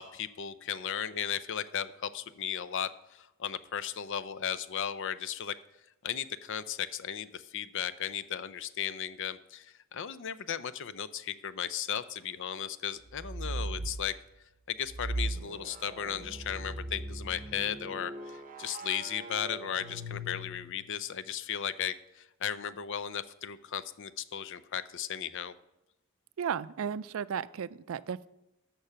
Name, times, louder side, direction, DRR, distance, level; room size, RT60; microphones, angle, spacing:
voice 1, 0.0-5.6 6.0-14.1 14.7-25.5, left 9 dB, 60° left, 15 dB, 0.5 m, -36 dB
sound 1, 13.1-14.0 14.9-20.9, right 1 dB, 40° right, 0.8 m, -39 dB
voice 2, 26.4-28.3, right 7 dB, 70° right, 17 dB, 0.4 m, -34 dB
13.5 x 6.0 x 5.7 m, 0.91 s
head